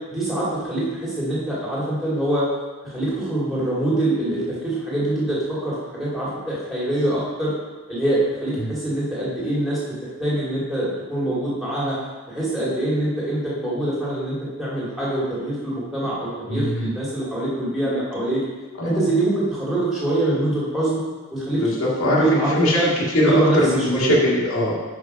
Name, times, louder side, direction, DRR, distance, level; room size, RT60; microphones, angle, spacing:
voice 1, 0.1-2.5 2.8-7.5 7.9-9.8 10.2-12.0 12.3-18.4 18.8-21.0 21.3-22.9 23.2-24.2, right 1 dB, ahead, -8 dB, 2.1 m, -24 dB
voice 2, 16.5-16.9 18.8-19.1 21.5-24.8, left 1 dB, 80° left, -5 dB, 2.0 m, -21 dB
6.0 x 5.1 x 5.2 m, 1.4 s
head